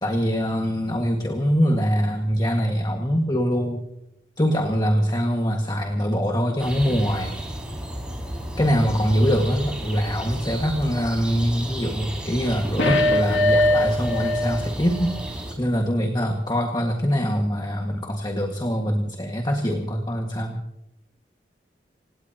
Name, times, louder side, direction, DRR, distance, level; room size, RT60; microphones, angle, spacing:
voice 1, 0.0-3.8 4.4-7.4 8.6-20.6, equal, 25° left, 2 dB, 1.8 m, -23 dB
sound 1, 6.6-15.5, equal, 5° right, 4.5 m, -33 dB
sound 2, 12.8-14.6 14.9-15.0, left 1 dB, 80° left, 2.2 m, -21 dB
28.0 x 17.5 x 2.9 m, 0.85 s
head